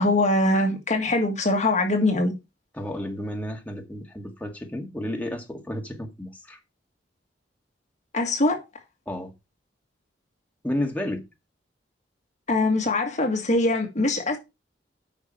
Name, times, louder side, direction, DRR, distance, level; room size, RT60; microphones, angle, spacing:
voice 1, 0.0-2.3 8.1-8.6 12.5-14.4, left 2 dB, 40° left, 1.9 m, -22 dB
voice 2, 2.7-6.6 9.0-9.3 10.6-11.2, left 1 dB, 10° left, 1.8 m, -32 dB
9.3 x 6.0 x 4.5 m
head